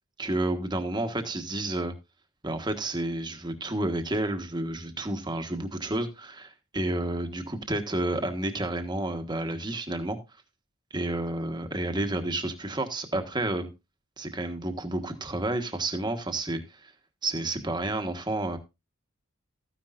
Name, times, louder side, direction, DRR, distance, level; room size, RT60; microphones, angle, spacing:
voice 1, 0.2-1.9 2.4-10.2 10.9-13.7 14.2-16.9 17.2-18.6, right 1 dB, 20° right, 7 dB, 1.3 m, -30 dB
14.0 x 10.0 x 2.6 m, 0.25 s
head